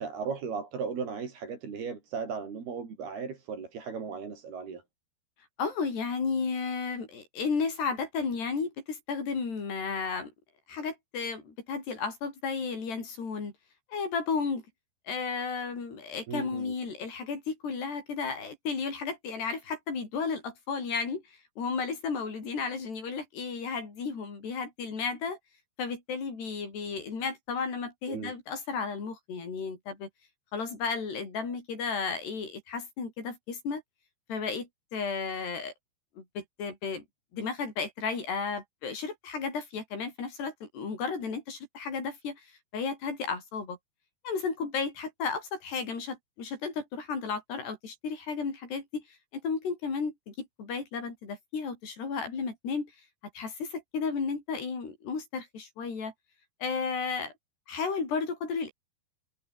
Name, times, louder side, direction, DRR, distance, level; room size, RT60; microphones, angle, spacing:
voice 1, 0.0-4.8 16.3-16.7 28.1-28.4, right 5 dB, 60° right, 6.6 m, -36 dB
voice 2, 5.6-10.3 10.7-13.5 13.9-14.6 15.1-21.2 21.6-25.4 25.8-30.1 30.5-33.8 34.3-35.7 36.2-37.0 37.3-42.4 42.7-43.8 44.3-49.0 49.3-52.9 53.4-56.1 56.6-57.3 57.7-58.7, left 5 dB, 70° left, 8.8 m, -33 dB
omnidirectional pair, 5.0 m